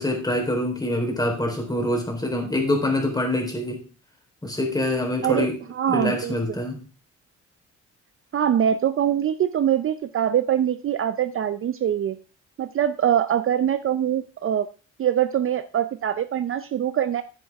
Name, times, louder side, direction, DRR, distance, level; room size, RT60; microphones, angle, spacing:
voice 1, 0.0-3.8 4.4-5.6 5.9-6.8, left 1 dB, 10° left, 1 dB, 3.7 m, -25 dB
voice 2, 5.2-6.3 8.3-12.2 12.6-14.7 15.0-17.2, right 10 dB, 45° right, 13 dB, 0.5 m, -23 dB
9.9 x 9.4 x 3.5 m, 0.35 s
cardioid pair, 90°, 30 cm